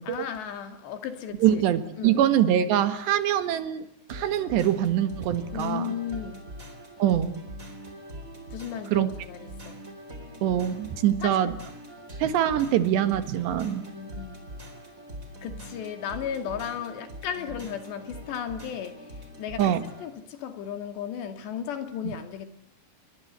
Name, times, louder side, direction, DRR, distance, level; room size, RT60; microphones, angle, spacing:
voice 1, 0.0-1.6 2.0-2.3 5.5-6.4 8.5-9.8 11.2-11.6 13.6-14.4 15.4-22.5, left 8 dB, 75° left, 4.4 m, -35 dB
voice 2, 1.4-5.9 7.0-7.4 8.9-9.1 10.4-11.5 12.2-13.8 19.6-19.8 22.1-22.2, right 10 dB, 75° right, 3.8 m, -24 dB
sound 1, 4.1-20.1, equal, 20° right, 4.3 m, -43 dB
29.0 x 24.5 x 8.2 m
omnidirectional pair, 5.0 m